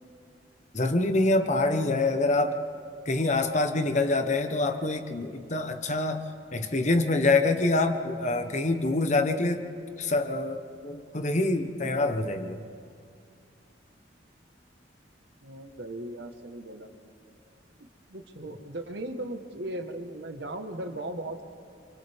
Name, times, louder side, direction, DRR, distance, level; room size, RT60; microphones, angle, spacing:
voice 1, 0.7-2.6 3.1-6.2 6.5-9.6 10.0-10.6 10.8-12.6, left 2 dB, 40° left, 7 dB, 1.1 m, -25 dB
voice 2, 15.4-16.9 18.1-21.4, right 1 dB, 65° right, 5 dB, 1.5 m, -37 dB
29.0 x 26.5 x 3.6 m, 2.3 s
head